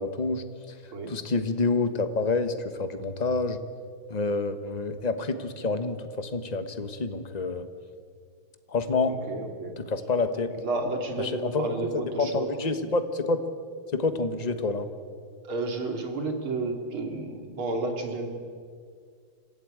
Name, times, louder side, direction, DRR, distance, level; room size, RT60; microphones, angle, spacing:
voice 1, 0.0-0.8 1.1-3.6 4.1-7.7 8.7-9.1 9.8-10.5 11.2-13.4 13.9-14.9, left 3 dB, 25° left, 9 dB, 1.1 m, -28 dB
voice 2, 9.1-9.8 10.5-12.5 15.4-18.3, right 3 dB, 75° right, 3 dB, 3.5 m, -31 dB
26.5 x 15.5 x 9.0 m, 2.1 s
omnidirectional pair, 2.3 m